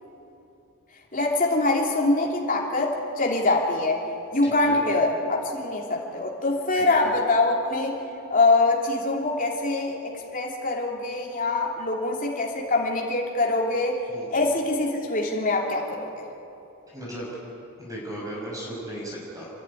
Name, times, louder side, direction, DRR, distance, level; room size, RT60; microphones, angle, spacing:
voice 1, 1.1-4.0 4.3-8.0 8.3-14.0 14.3-16.1, left 2 dB, 40° left, -1 dB, 3.1 m, -24 dB
voice 2, 4.4-4.8 6.7-7.1 14.1-14.5 16.9-17.3 17.8-19.5, equal, 15° right, -5 dB, 5.6 m, -36 dB
28.5 x 11.5 x 9.9 m, 2.8 s
head